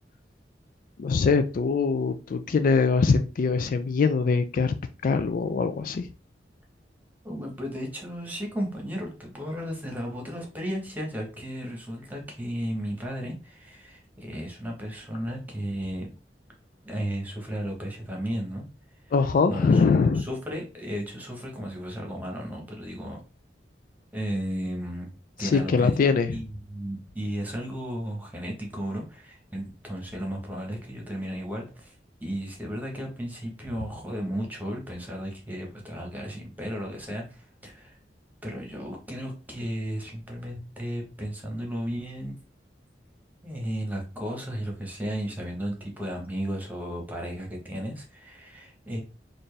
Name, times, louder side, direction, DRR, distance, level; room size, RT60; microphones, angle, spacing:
voice 1, 1.0-4.7 5.0-6.1 19.1-20.3 25.4-26.4, left 4 dB, 50° left, 9 dB, 0.3 m, -23 dB
voice 2, 7.2-16.1 16.8-18.6 19.0-19.1 19.5-19.8 20.2-23.2 24.1-25.1 25.4-31.9 32.2-38.0 38.4-42.4 43.4-49.0, equal, 10° right, 0 dB, 1.2 m, -34 dB
4.2 x 2.5 x 3.3 m, 0.32 s
head